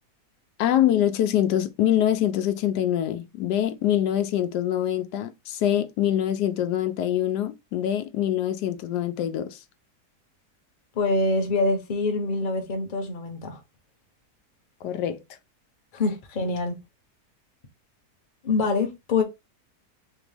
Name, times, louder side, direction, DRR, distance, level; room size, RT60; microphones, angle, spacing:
voice 1, 0.6-9.6 14.8-15.2, left 11 dB, 90° left, 1.2 m, -24 dB
voice 2, 10.9-13.6 15.9-16.8 18.4-19.2, left 3 dB, 40° left, 0.8 m, -25 dB
3.3 x 3.0 x 3.3 m
omnidirectional pair, 1.7 m